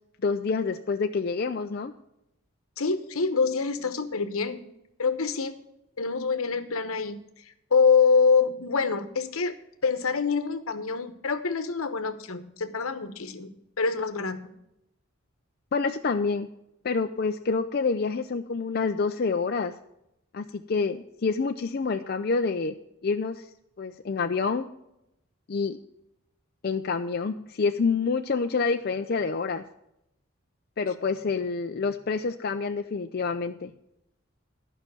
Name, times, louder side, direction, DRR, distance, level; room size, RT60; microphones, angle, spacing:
voice 1, 0.2-1.9 15.7-16.5 16.8-19.7 20.3-22.7 23.0-23.5 23.8-24.7 25.5-25.8 26.6-29.6 30.8-33.7, left 4 dB, 45° left, 6 dB, 0.4 m, -27 dB
voice 2, 2.8-4.6 5.0-5.6 6.0-7.2 7.7-9.6 9.8-14.5, left 5 dB, 75° left, 10 dB, 1.0 m, -25 dB
11.5 x 5.8 x 6.7 m, 0.83 s
head